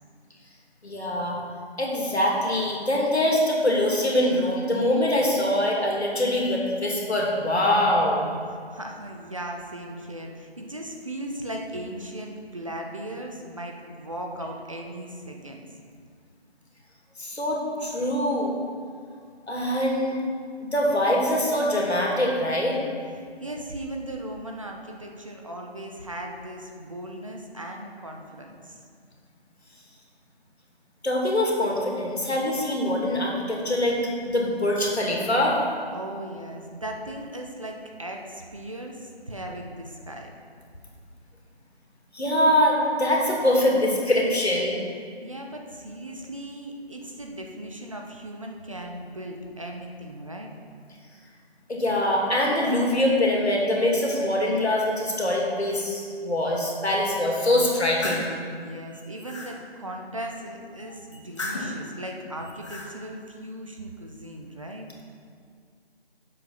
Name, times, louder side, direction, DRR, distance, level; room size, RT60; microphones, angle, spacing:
voice 1, 0.8-1.4 1.8-8.2 17.2-18.5 19.5-20.2 20.6-22.8 31.0-34.0 34.2-35.6 42.1-44.8 51.7-58.2, left 1 dB, 75° left, -2 dB, 2.6 m, -23 dB
voice 2, 8.7-15.7 23.4-28.8 35.9-40.3 45.2-50.5 58.6-64.9, right 1 dB, 30° right, 1 dB, 0.8 m, -37 dB
sound 1, 57.8-58.3 58.9-59.5 61.1-61.8 62.4-62.9, left 2 dB, 30° left, 1.5 m, -34 dB
7.9 x 7.6 x 5.7 m, 2.1 s
figure-of-eight pair, 165°, 32 cm